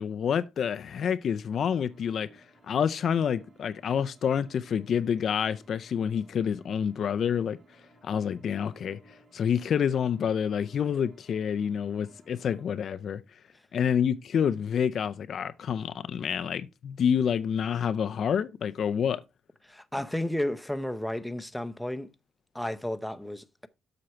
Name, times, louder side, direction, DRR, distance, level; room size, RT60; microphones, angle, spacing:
voice 1, 0.0-2.3 2.7-7.6 8.0-9.0 9.3-13.2 13.7-19.2, left 8 dB, 60° left, 0.5 m, -28 dB
sound 1, 1.9-12.7, right 2 dB, 45° right, 3.1 m, -59 dB
voice 2, 19.6-22.1 22.5-23.7, left 1 dB, 5° left, 0.7 m, -32 dB
7.8 x 5.9 x 4.2 m
cardioid pair, 90°, 0 cm